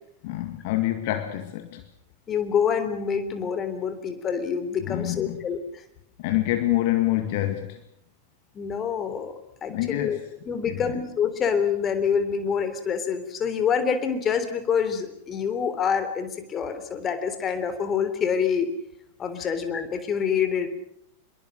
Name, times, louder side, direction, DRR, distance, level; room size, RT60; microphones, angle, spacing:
voice 1, 0.2-1.8 4.8-5.4 6.2-7.8 9.7-10.2 10.6-11.0 19.4-19.5, left 15 dB, 50° left, 2.0 m, -26 dB
voice 2, 2.3-5.8 8.5-10.2 10.5-18.7 19.2-20.7, left 7 dB, 25° left, 3.5 m, -26 dB
26.0 x 22.5 x 6.4 m
figure-of-eight pair, 90°, 0 cm